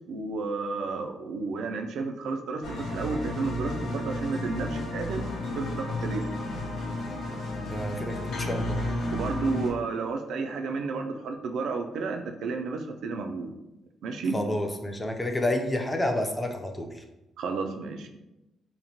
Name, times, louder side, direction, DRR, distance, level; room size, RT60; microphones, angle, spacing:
voice 1, 0.1-5.2 5.5-6.3 9.1-13.5 14.0-14.4 17.4-18.1, right 4 dB, 75° right, 5 dB, 0.3 m, -32 dB
sound 1, 2.6-9.7, left 1 dB, 75° left, 0.6 m, -32 dB
voice 2, 7.6-8.9 14.3-17.0, left 1 dB, 15° left, 3 dB, 0.3 m, -29 dB
3.0 x 2.1 x 2.7 m, 0.95 s
cardioid pair, 90°, 0 cm